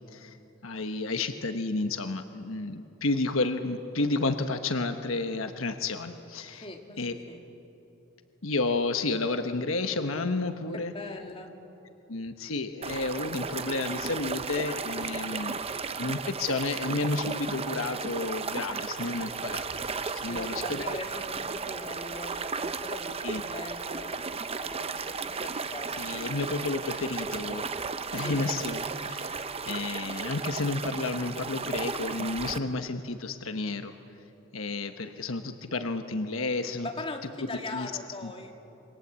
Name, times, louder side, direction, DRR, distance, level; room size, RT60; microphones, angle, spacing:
voice 1, 0.6-6.6 7.0-7.1 8.4-10.9 12.1-15.6 16.0-20.9 23.2-23.4 26.0-27.7 28.1-29.4 29.7-33.9 34.5-36.9 37.7-37.9 38.2-38.3, left 3 dB, 75° left, 7 dB, 1.2 m, -31 dB
voice 2, 6.6-7.4 10.9-11.5 15.1-15.5 20.3-25.1 25.4-26.5 28.2-28.4 36.8-38.5, left 2 dB, 25° left, 2 dB, 2.5 m, -41 dB
sound 1, 12.8-32.6, right 4 dB, 30° right, 0.7 m, -34 dB
27.5 x 24.5 x 8.3 m, 3.0 s
head